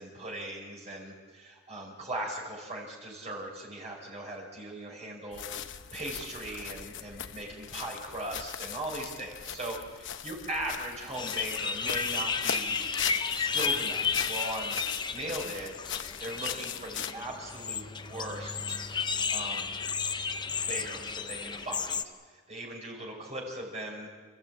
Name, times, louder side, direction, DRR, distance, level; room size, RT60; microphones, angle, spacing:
voice 1, 0.0-12.9 13.3-14.8 15.1-15.7 16.2-18.8 19.3-19.7 20.6-24.1, right 1 dB, 35° right, -1 dB, 5.0 m, -39 dB
sound 1, 5.3-17.1, left 9 dB, 60° left, 0.9 m, -39 dB
sound 2, 11.2-22.0, left 5 dB, 20° left, 0.7 m, -33 dB
29.0 x 15.0 x 8.9 m, 1.5 s
head